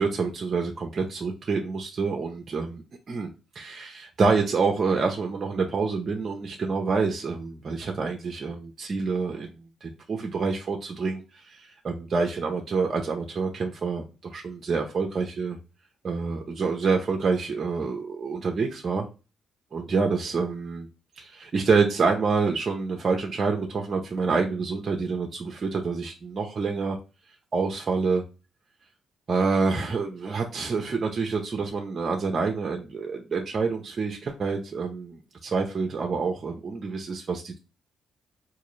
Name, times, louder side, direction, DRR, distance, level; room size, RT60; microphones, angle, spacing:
voice 1, 0.0-15.6 16.0-19.1 19.7-20.9 21.2-27.0 27.5-28.2 29.3-37.6, right 4 dB, 45° right, 2 dB, 0.6 m, -27 dB
3.7 x 2.5 x 3.1 m, 0.30 s
supercardioid pair, 70°, 0 cm